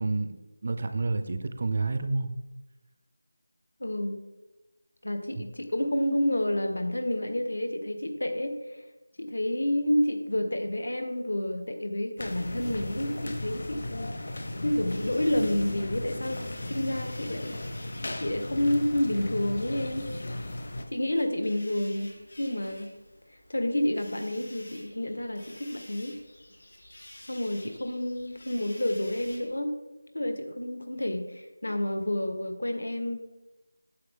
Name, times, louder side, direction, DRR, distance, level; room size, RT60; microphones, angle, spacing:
voice 1, 0.0-2.3, right 3 dB, 25° right, 9 dB, 0.4 m, -29 dB
voice 2, 3.8-4.2 5.0-8.8 9.2-17.6 18.2-20.1 20.9-22.9 23.5-26.2 27.3-29.7 30.1-33.3, left 1 dB, 80° left, 6 dB, 1.5 m, -29 dB
sound 1, 12.2-20.9, left 1 dB, 35° left, 0.8 m, -36 dB
sound 2, 14.8-29.6, left 1 dB, 60° left, 2.8 m, -51 dB
9.6 x 7.2 x 3.7 m, 1.1 s
figure-of-eight pair, 180°, 0 cm